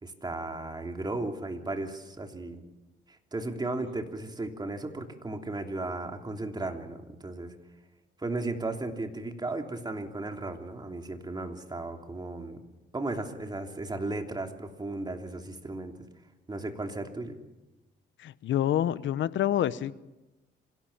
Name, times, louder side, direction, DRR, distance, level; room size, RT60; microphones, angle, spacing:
voice 1, 0.0-2.6 3.1-7.5 8.2-12.6 12.9-16.0 16.5-17.4, right 2 dB, 20° right, 4 dB, 3.2 m, -35 dB
voice 2, 18.2-19.9, left 11 dB, 70° left, 16 dB, 1.0 m, -27 dB
26.5 x 17.0 x 7.3 m, 1.0 s
cardioid pair, 90°, 20 cm